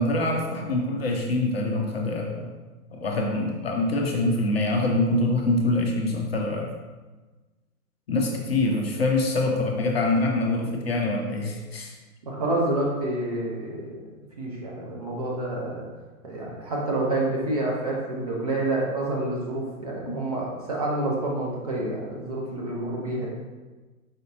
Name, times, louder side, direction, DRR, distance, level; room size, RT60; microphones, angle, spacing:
voice 1, 0.0-2.5 2.9-6.7 8.1-11.9 22.5-22.6, left 2 dB, 45° left, 1 dB, 0.5 m, -25 dB
voice 2, 12.2-14.1 14.4-15.8 16.2-23.3, right 2 dB, 25° right, -4 dB, 0.5 m, -28 dB
4.8 x 2.5 x 2.8 m, 1.2 s
figure-of-eight pair, 120°, 45 cm